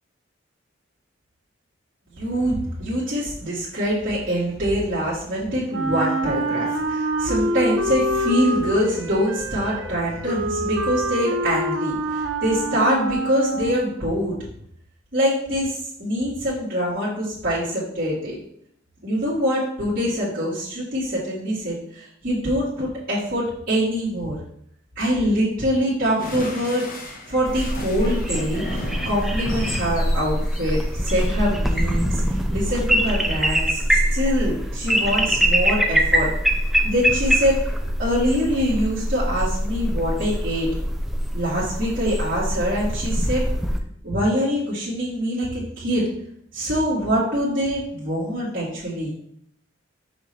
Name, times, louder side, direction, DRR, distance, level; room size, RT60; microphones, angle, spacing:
voice 1, 2.1-14.4 15.1-18.4 19.0-24.4 25.0-26.9 27.3-36.3 36.8-37.6 38.0-40.7 41.3-43.4 44.0-46.1 46.5-49.1, equal, 50° right, -9 dB, 1.8 m, -24 dB
Wind instrument woodwind instrument, 5.7-14.0, right 1 dB, 80° right, 0.7 m, -26 dB
sound 1, 26.2-31.3, left 1 dB, 50° left, 1.1 m, -34 dB
sound 2, 27.5-43.8, equal, ahead, 0.5 m, -23 dB
6.1 x 5.5 x 3.2 m, 0.68 s
head